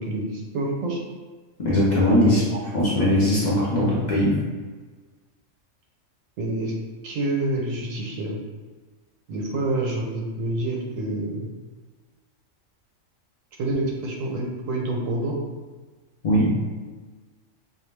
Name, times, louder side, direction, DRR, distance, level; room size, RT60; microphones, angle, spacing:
voice 1, 0.1-1.0 2.2-2.4 6.4-6.7 7.0-8.4 9.3-11.5 13.6-15.4, right 2 dB, 85° right, 0 dB, 1.0 m, -27 dB
voice 2, 1.6-2.4 2.7-4.4 16.2-16.6, left 1 dB, 45° left, -7 dB, 0.6 m, -20 dB
2.4 x 2.2 x 3.2 m, 1.4 s
omnidirectional pair, 1.3 m